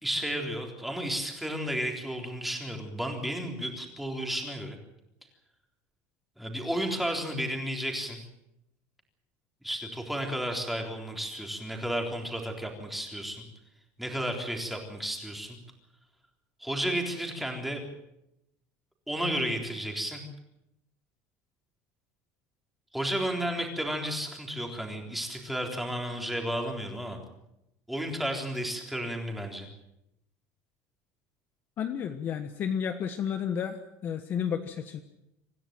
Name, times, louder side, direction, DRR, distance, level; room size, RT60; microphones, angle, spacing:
voice 1, 0.0-4.8 6.4-8.2 9.6-13.4 14.0-15.6 16.6-17.8 19.1-20.2 22.9-27.2 27.9-29.7, equal, ahead, 2 dB, 3.8 m, -32 dB
voice 2, 31.8-35.0, left 8 dB, 30° left, 8 dB, 1.3 m, -32 dB
26.5 x 15.5 x 9.0 m, 0.86 s
cardioid pair, 175°, 6 cm